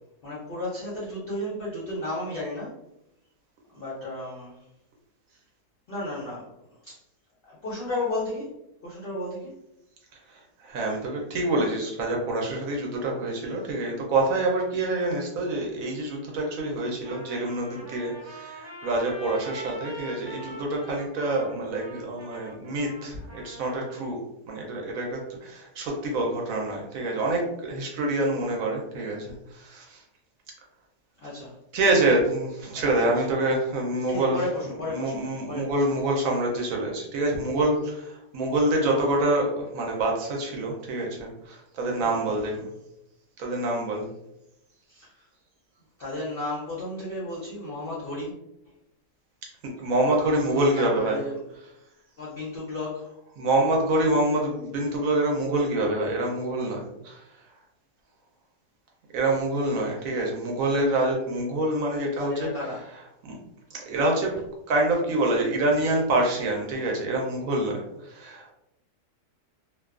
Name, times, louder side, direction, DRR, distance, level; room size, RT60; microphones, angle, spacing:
voice 1, 0.2-2.7 3.7-4.6 5.9-6.5 6.8-7.0 7.4-8.6 8.8-9.5 16.7-16.8 17.7-17.9 20.3-20.6 31.2-31.5 32.7-33.0 34.1-35.1 35.5-35.8 38.7-39.0 42.0-42.6 44.9-45.2 46.0-48.3 50.1-51.4 52.2-53.1 62.2-62.9, left 2 dB, 60° left, -6 dB, 0.6 m, -34 dB
voice 2, 10.6-24.2 24.5-30.0 31.7-34.4 34.9-42.5 43.4-44.0 49.6-51.2 53.4-57.2 59.1-62.5 63.3-63.4 63.7-64.3 64.7-68.5, right 2 dB, 70° right, 0 dB, 0.9 m, -26 dB
Trumpet, 17.0-24.1, right 1 dB, 35° right, 1.0 m, -43 dB
2.5 x 2.2 x 2.3 m, 0.84 s
omnidirectional pair, 1.7 m